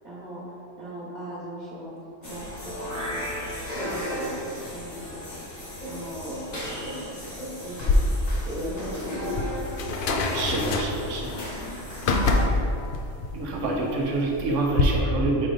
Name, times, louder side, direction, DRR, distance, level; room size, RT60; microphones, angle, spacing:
voice 1, 0.0-1.9 2.2-3.3 3.6-5.6 5.8-7.2 7.6-8.0 8.4-9.3, equal, 50° right, -9 dB, 1.6 m, -38 dB
sound 1, 2.2-12.4, equal, 35° left, 1.2 m, -35 dB
sound 2, 7.8-14.8, left 3 dB, 60° left, 0.6 m, -27 dB
voice 2, 10.3-11.3 11.7-11.9 13.3-15.5, right 2 dB, 80° right, -1 dB, 1.2 m, -27 dB
5.4 x 4.9 x 3.9 m, 2.6 s
omnidirectional pair, 1.3 m